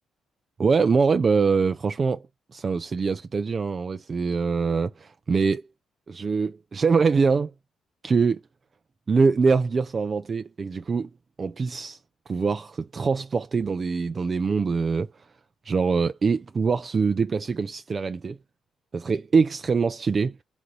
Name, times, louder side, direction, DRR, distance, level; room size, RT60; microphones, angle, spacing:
voice 1, 0.6-2.2 2.5-5.6 6.1-7.5 8.0-8.4 9.1-11.1 11.4-12.0 12.3-15.1 15.6-18.4 18.9-20.3, right 5 dB, 35° right, 0.4 m, -23 dB
4.0 x 3.8 x 3.1 m
cardioid pair, 90°, 0 cm